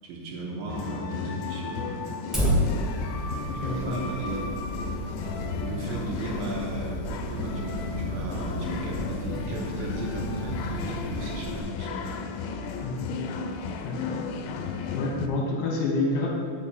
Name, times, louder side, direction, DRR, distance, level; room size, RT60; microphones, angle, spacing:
voice 1, 0.0-2.1 3.4-4.4 5.6-12.3, right 2 dB, 75° right, -2 dB, 2.6 m, -36 dB
sound 1, 0.7-15.3, left 5 dB, 90° left, 2.4 m, -34 dB
Fire, 2.3-11.6, equal, ahead, 0.4 m, -32 dB
voice 2, 3.5-4.0 12.8-13.1 13.8-14.2 14.9-16.3, left 3 dB, 75° left, -1 dB, 2.8 m, -29 dB
8.5 x 5.9 x 4.1 m, 2.3 s
omnidirectional pair, 4.2 m